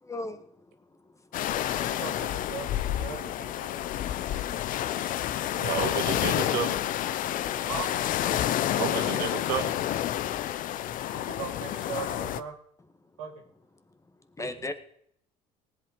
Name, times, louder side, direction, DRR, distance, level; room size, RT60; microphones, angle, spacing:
voice 1, 0.0-0.5 14.4-14.7, left 2 dB, 20° left, 9 dB, 1.6 m, -34 dB
sound 1, 1.3-12.4, left 12 dB, 55° left, 0.8 m, -29 dB
voice 2, 1.7-3.9 4.3-4.5 7.6-7.9 11.1-12.5 13.2-13.3, right 6 dB, 90° right, 2 dB, 2.8 m, -39 dB
voice 3, 5.5-6.8 8.7-9.7 14.4-14.5, right 8 dB, 75° right, 6 dB, 2.2 m, -31 dB
18.5 x 8.4 x 5.0 m, 0.69 s
hypercardioid pair, 75°, 16 cm